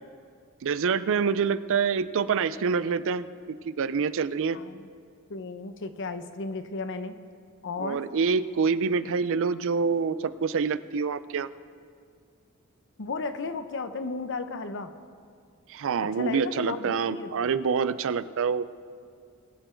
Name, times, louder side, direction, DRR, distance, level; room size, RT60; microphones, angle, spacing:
voice 1, 0.6-4.6 7.8-11.5 15.7-18.7, right 5 dB, 60° right, 15 dB, 0.4 m, -26 dB
voice 2, 4.5-4.9 5.3-7.2 7.6-8.0 13.0-14.9 16.2-17.5, left 4 dB, 60° left, 10 dB, 0.8 m, -34 dB
22.0 x 7.8 x 4.5 m, 2.3 s
head